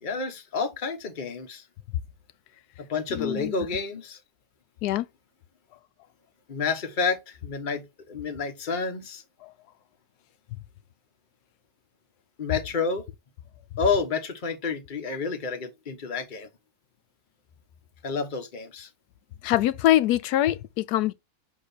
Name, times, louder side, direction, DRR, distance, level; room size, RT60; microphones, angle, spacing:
voice 1, 0.0-1.6 2.8-4.2 6.5-9.2 12.4-13.1 13.8-16.5 18.0-18.9, left 5 dB, 35° left, 1.1 m, -29 dB
voice 2, 3.2-3.5 4.8-5.0 19.4-21.1, left 14 dB, 80° left, 1.1 m, -23 dB
7.4 x 3.0 x 4.1 m
omnidirectional pair, 1.7 m